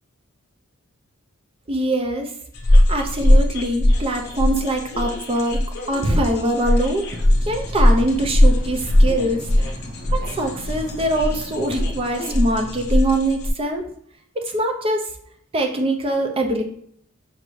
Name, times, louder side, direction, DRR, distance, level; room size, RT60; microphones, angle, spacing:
voice 1, 1.7-2.3 2.7-5.6 5.9-7.1 7.5-9.7 10.1-13.8 14.4-15.1 15.5-16.6, right 1 dB, 25° right, 3 dB, 0.5 m, -23 dB
sound 1, 2.5-13.5, left 1 dB, 50° left, 0.7 m, -20 dB
sound 2, 6.8-13.1, equal, 40° right, 0.9 m, -42 dB
5.2 x 2.6 x 3.1 m, 0.66 s
head